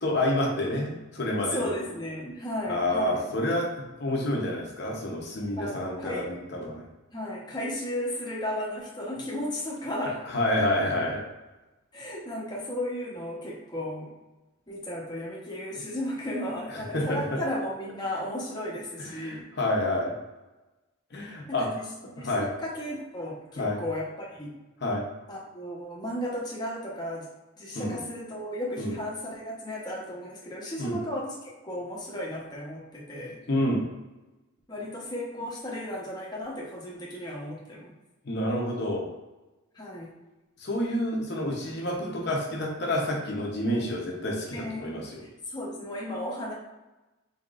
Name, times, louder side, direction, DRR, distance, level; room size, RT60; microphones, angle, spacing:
voice 1, 0.0-1.7 2.7-6.9 10.2-11.2 16.7-17.4 19.0-20.1 21.1-21.7 22.2-22.5 23.6-23.8 24.8-25.1 27.7-28.0 28.8-28.9 30.8-31.0 33.5-33.8 38.2-39.1 40.6-45.2, left 1 dB, 55° left, -1 dB, 0.8 m, -28 dB
voice 2, 1.5-3.2 5.6-6.2 7.1-10.2 11.9-14.1 14.7-19.5 21.6-21.9 22.2-24.5 25.3-27.3 27.6-31.3 31.6-33.4 34.7-37.9 39.7-40.1 44.5-46.5, left 1 dB, 20° left, -4 dB, 0.9 m, -34 dB
3.8 x 3.7 x 2.4 m, 1.1 s
head